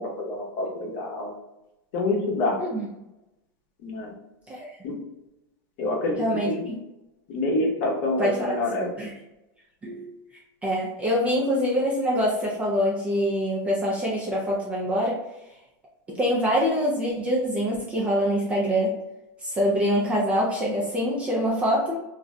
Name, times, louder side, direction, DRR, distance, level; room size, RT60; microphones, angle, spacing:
voice 1, 0.0-1.3 1.9-2.6 3.8-4.1 4.8-5.0 5.8-6.7 7.3-8.8, left 2 dB, 40° left, -1 dB, 0.7 m, -27 dB
voice 2, 6.2-6.8 8.2-9.1 9.8-10.1 10.6-15.2 16.2-19.0 19.4-22.0, equal, 10° right, -4 dB, 0.3 m, -25 dB
2.5 x 2.1 x 3.6 m, 0.95 s
supercardioid pair, 170°, 11 cm